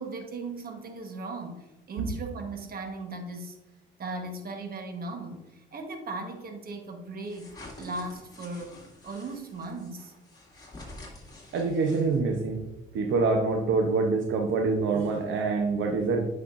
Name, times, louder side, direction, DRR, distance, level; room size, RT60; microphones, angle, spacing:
voice 1, 0.0-3.6 4.0-8.8 9.0-10.1, right 3 dB, 50° right, 5 dB, 1.3 m, -38 dB
sound 1, 7.3-12.4, left 2 dB, 20° left, 2.3 m, -48 dB
voice 2, 11.5-12.7 12.9-16.3, right 4 dB, 75° right, 3 dB, 0.9 m, -26 dB
8.5 x 5.8 x 2.6 m, 1.0 s
cardioid pair, 90°, 20 cm